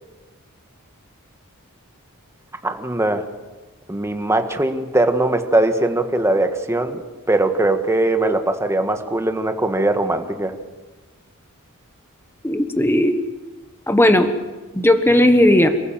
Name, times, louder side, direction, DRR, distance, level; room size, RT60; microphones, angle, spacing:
voice 1, 2.6-3.3 3.9-10.6, right 2 dB, 15° right, 6 dB, 1.6 m, -20 dB
voice 2, 12.4-13.2 13.9-14.3 14.7-15.7, left 1 dB, 10° left, 7 dB, 1.4 m, -15 dB
28.0 x 15.5 x 7.5 m, 1.2 s
head